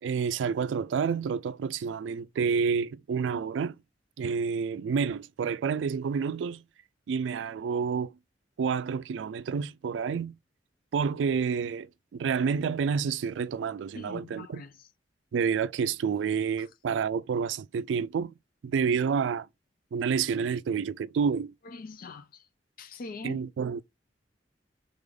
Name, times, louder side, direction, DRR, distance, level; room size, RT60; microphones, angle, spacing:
voice 1, 0.0-3.8 4.2-6.6 7.1-8.1 8.6-10.4 10.9-14.6 15.3-18.3 18.6-19.5 19.9-21.5 23.2-23.8, right 6 dB, 75° right, 0.3 m, -29 dB
voice 2, 13.9-14.9 16.6-16.7 21.6-22.5 22.8-23.4, left 3 dB, 50° left, 0.4 m, -42 dB
3.8 x 3.5 x 3.4 m
head